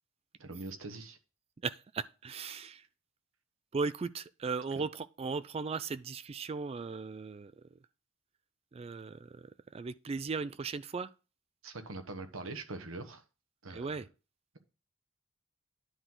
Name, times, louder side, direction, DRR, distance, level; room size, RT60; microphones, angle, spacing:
voice 1, 0.4-1.2 4.7-4.8 11.6-13.2 13.6-14.0, right 2 dB, 80° right, 1.2 m, -43 dB
voice 2, 1.6-2.8 3.7-7.5 8.7-11.1 13.7-14.1, right 4 dB, 30° right, 0.3 m, -37 dB
10.0 x 3.8 x 6.0 m
head